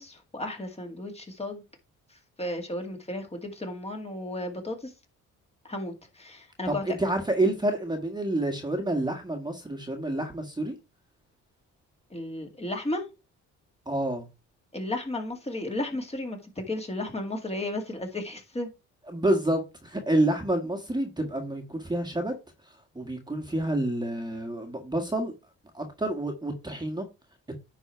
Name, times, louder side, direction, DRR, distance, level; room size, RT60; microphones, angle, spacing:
voice 1, 0.0-1.6 2.1-4.9 5.7-7.0 12.1-13.0 14.7-18.7, left 1 dB, 20° left, 2.2 m, -34 dB
voice 2, 6.7-10.7 13.9-14.3 19.1-22.3 23.0-25.3 25.7-27.1, right 1 dB, 15° right, 1.6 m, -28 dB
10.0 x 4.1 x 4.5 m
cardioid pair, 90°, 30 cm